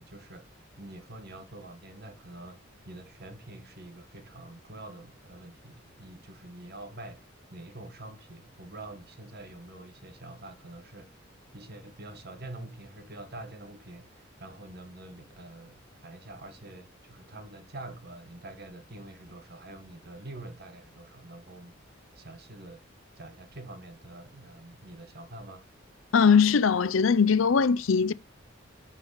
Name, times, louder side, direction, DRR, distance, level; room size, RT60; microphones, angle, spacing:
voice 1, 0.0-2.6 2.9-11.3 11.5-21.7 22.2-22.8 23.2-25.7, right 2 dB, 55° right, 1.8 m, -46 dB
voice 2, 26.1-28.1, left 6 dB, 80° left, 0.6 m, -21 dB
9.8 x 4.8 x 6.5 m
head